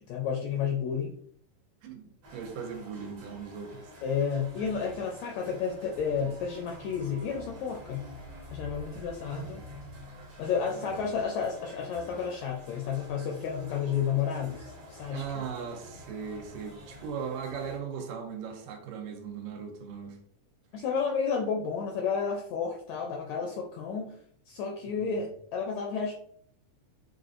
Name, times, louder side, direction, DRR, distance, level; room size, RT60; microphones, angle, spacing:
voice 1, 0.1-1.1 4.0-8.1 8.5-9.6 10.4-15.4 20.7-24.1 24.5-26.1, left 6 dB, 85° left, 1 dB, 1.5 m, -31 dB
sound 1, 2.2-17.8, left 1 dB, 65° right, 1.1 m, -48 dB
voice 2, 2.3-3.9 9.3-9.5 10.7-11.2 15.1-20.2 24.9-25.3, right 6 dB, 85° right, 4 dB, 2.3 m, -38 dB
5.9 x 2.4 x 2.5 m, 0.63 s
omnidirectional pair, 3.7 m